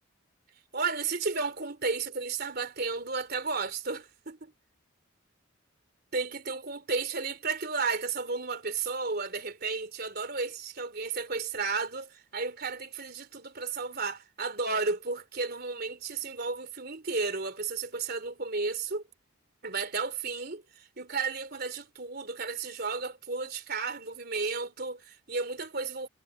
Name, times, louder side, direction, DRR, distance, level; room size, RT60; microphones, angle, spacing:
voice 1, 0.7-4.5 6.1-19.0 19.6-26.1, right 4 dB, 50° right, 3.5 m, -33 dB
head